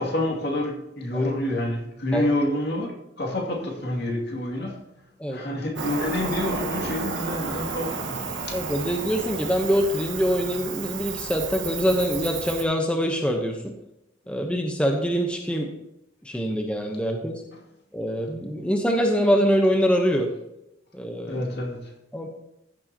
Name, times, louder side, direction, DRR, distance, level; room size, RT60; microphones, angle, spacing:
voice 1, 0.0-2.9 3.2-4.8 5.3-8.6 21.2-21.9, left 1 dB, 60° left, 2.4 m, -28 dB
Cricket, 5.8-12.6, right 4 dB, 80° right, 1.4 m, -32 dB
voice 2, 8.5-13.7 14.3-15.7 16.2-17.4 17.9-20.3 20.9-21.4 22.1-22.3, equal, 5° left, 0.9 m, -24 dB
15.0 x 7.6 x 2.9 m
head